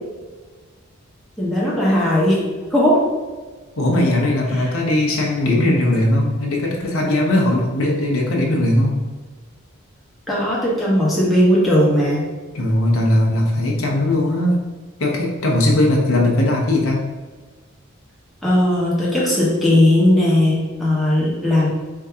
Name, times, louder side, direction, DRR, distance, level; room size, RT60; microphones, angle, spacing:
voice 1, 1.4-2.4 2.7-3.0 10.3-12.3 18.4-21.7, left 1 dB, ahead, -7 dB, 1.1 m, -17 dB
voice 2, 3.8-9.0 12.5-14.6 15.0-17.0, left 1 dB, 70° left, -2 dB, 0.8 m, -18 dB
4.5 x 2.8 x 3.5 m, 1.4 s
head